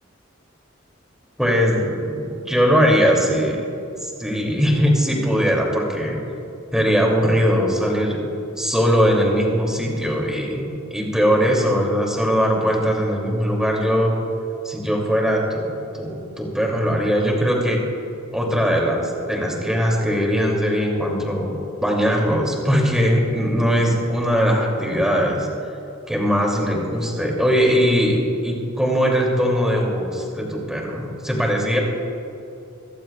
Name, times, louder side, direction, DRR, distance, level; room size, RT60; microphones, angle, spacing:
voice 1, 1.4-3.7 4.0-6.2 6.7-8.2 8.6-14.1 14.6-17.8 18.3-21.5 21.8-25.5 26.1-31.8, equal, 5° right, -1 dB, 2.8 m, -20 dB
25.5 x 14.5 x 2.4 m, 2.7 s
head